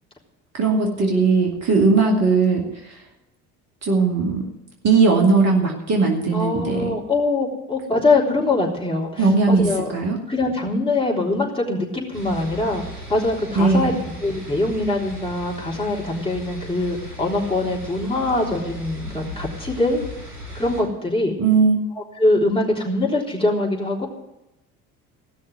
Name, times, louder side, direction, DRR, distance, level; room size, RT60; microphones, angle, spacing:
voice 1, 0.5-2.7 3.8-4.4 4.8-7.0 9.2-10.2 13.6-14.0 21.4-21.8, right 4 dB, 35° right, 1 dB, 2.5 m, -18 dB
voice 2, 6.3-9.9 10.3-12.8 13.1-13.9 14.2-20.0 20.5-21.3 22.2-24.1, left 2 dB, 10° left, -3 dB, 3.6 m, -23 dB
sound 1, 12.1-20.8, left 1 dB, 85° right, 2.9 m, -37 dB
16.5 x 6.3 x 9.4 m, 0.92 s
figure-of-eight pair, 60°, 44 cm